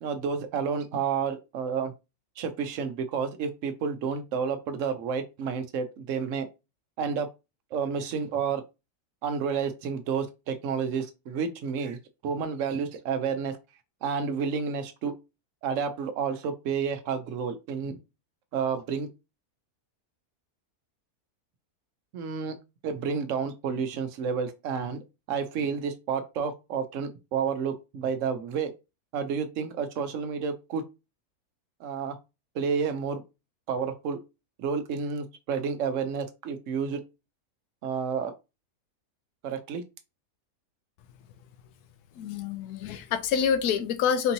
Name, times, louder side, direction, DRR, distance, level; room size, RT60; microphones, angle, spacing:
voice 1, 0.0-1.9 2.4-6.5 7.0-7.3 7.7-8.6 9.2-12.0 12.2-13.6 14.0-15.1 15.6-18.0 18.5-19.1 22.1-22.6 22.8-25.0 25.3-28.7 29.1-30.8 31.8-32.1 32.5-33.2 33.7-34.2 34.6-37.0 37.8-38.3 39.4-39.8, right 6 dB, 60° right, 0.9 m, -30 dB
voice 2, 42.1-44.3, left 7 dB, 80° left, 1.1 m, -27 dB
4.4 x 2.8 x 2.8 m
omnidirectional pair, 1.7 m